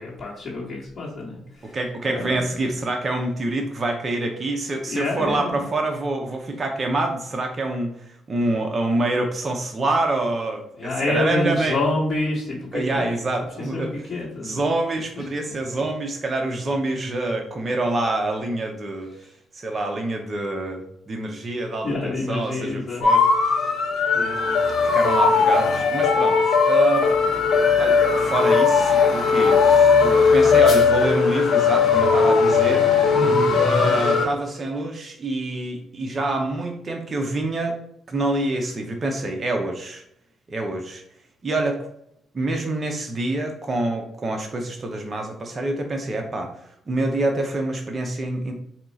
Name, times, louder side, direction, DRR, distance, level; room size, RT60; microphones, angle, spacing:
voice 1, 0.0-1.8 2.0-2.6 4.8-5.7 10.8-13.2 13.7-14.6 15.2-15.3 21.8-23.1 24.1-24.7 33.1-33.6, left 2 dB, 40° left, -5 dB, 1.1 m, -28 dB
voice 2, 1.6-11.8 12.7-13.9 14.4-19.1 19.5-23.2 24.9-26.4 26.7-27.1 27.8-32.9 33.6-37.8 38.1-40.0 40.5-41.0 41.4-41.8 42.3-46.5 46.9-48.5, right 2 dB, 35° right, 2 dB, 0.6 m, -26 dB
sound 1, 23.0-34.3, left 5 dB, 60° left, 1.0 m, -18 dB
4.3 x 2.3 x 3.9 m, 0.76 s
cardioid pair, 90°, 0 cm